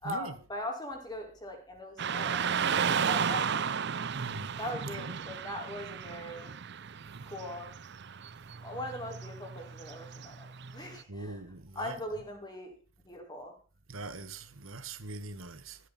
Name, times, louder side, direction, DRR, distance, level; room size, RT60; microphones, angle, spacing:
voice 1, 0.0-3.6 4.6-6.5 7.2-7.7 8.6-10.5 10.7-11.4 11.7-12.7 13.0-13.5, left 1 dB, 20° left, 5.0 m, -40 dB
Car passing by / Traffic noise roadway noise, 2.0-11.0, right 7 dB, 55° right, 0.6 m, -34 dB
voice 2, 4.1-4.5 4.8-5.1 11.1-12.0 13.9-15.8, right 2 dB, 80° right, 1.7 m, -42 dB
16.0 x 13.0 x 4.3 m
head